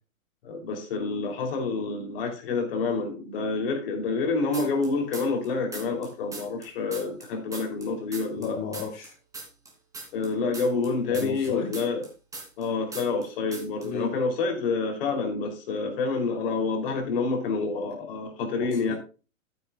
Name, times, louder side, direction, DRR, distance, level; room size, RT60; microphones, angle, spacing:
voice 1, 0.4-8.6 10.1-12.0 12.6-18.9, left 4 dB, 45° left, 4 dB, 3.5 m, -28 dB
sound 1, 4.5-5.5 5.7-8.5 8.7-12.7 12.9-13.3 13.5-13.9, right 3 dB, 10° right, 3.2 m, -40 dB
voice 2, 8.4-9.1 11.1-11.7 13.8-14.1 18.6-18.9, left 7 dB, 25° left, 1 dB, 2.0 m, -33 dB
13.5 x 9.4 x 2.4 m, 0.32 s
figure-of-eight pair, 115°, 41 cm